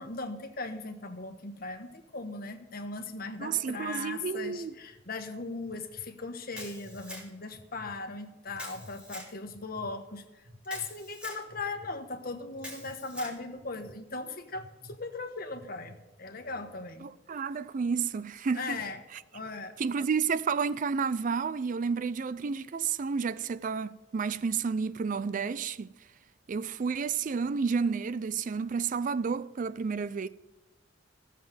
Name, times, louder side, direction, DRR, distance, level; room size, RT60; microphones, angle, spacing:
voice 1, 0.0-17.1 18.5-19.0 19.3-19.7, left 3 dB, 50° left, 1.3 m, -38 dB
voice 2, 3.4-4.7 17.0-18.8 19.8-25.9 26.5-30.3, right 5 dB, 45° right, 0.4 m, -31 dB
sound 1, 4.9-5.0 5.5-6.0 6.5-7.0 7.5-7.9 8.4-8.9 9.4-9.9 10.4-10.8 11.5-11.9 12.5-12.9 13.5-13.9 14.5-14.9 15.5-15.9, equal, 80° right, 4.9 m, -53 dB
Camera, 6.6-7.5 8.6-9.3 10.6-11.4 12.6-13.4, left 1 dB, 5° right, 3.0 m, -44 dB
14.5 x 7.4 x 7.6 m
head